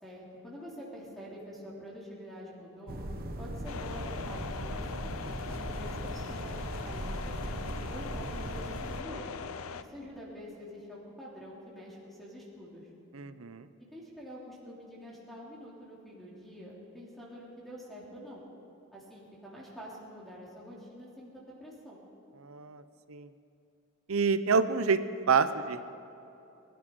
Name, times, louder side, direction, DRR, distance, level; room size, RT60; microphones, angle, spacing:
voice 1, 0.0-3.0 3.4-9.4 9.8-12.9 13.9-18.4 18.9-22.0, equal, ahead, -6 dB, 3.3 m, -46 dB
sound 1, 2.9-9.0, right 1 dB, 45° right, 1.2 m, -38 dB
sound 2, 3.7-9.8, left 6 dB, 85° left, 0.6 m, -41 dB
voice 2, 13.1-13.7 22.4-22.8 23.1-23.3 24.1-25.0 25.3-25.8, right 5 dB, 90° right, 12 dB, 0.8 m, -27 dB
22.0 x 12.0 x 5.4 m, 2.8 s
head